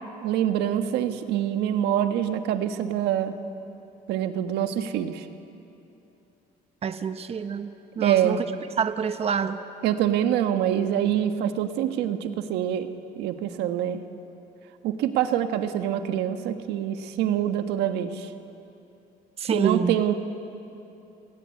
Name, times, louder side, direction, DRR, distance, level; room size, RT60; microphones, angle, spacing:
voice 1, 0.2-3.3 4.1-5.2 8.0-8.4 9.8-12.9 13.2-14.0 14.8-18.3 19.5-20.1, right 10 dB, 85° right, 8 dB, 1.5 m, -25 dB
voice 2, 6.8-7.7 8.0-8.4 8.8-9.6 19.4-20.0, right 7 dB, 35° right, 10 dB, 1.0 m, -26 dB
29.0 x 20.5 x 8.5 m, 2.8 s
cardioid pair, 110°, 17 cm